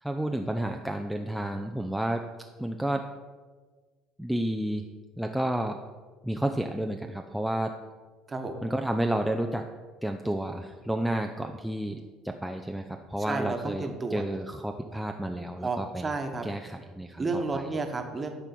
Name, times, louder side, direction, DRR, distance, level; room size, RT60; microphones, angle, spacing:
voice 1, 0.0-2.3 2.6-3.1 4.2-4.9 5.2-5.8 6.2-7.8 8.6-9.7 10.0-16.1 16.4-17.7, right 1 dB, 5° right, 3 dB, 0.5 m, -31 dB
voice 2, 13.3-14.2 15.6-16.5 17.2-18.3, right 3 dB, 25° right, 5 dB, 1.3 m, -31 dB
10.5 x 4.5 x 6.0 m, 1.4 s
figure-of-eight pair, 60°, 0 cm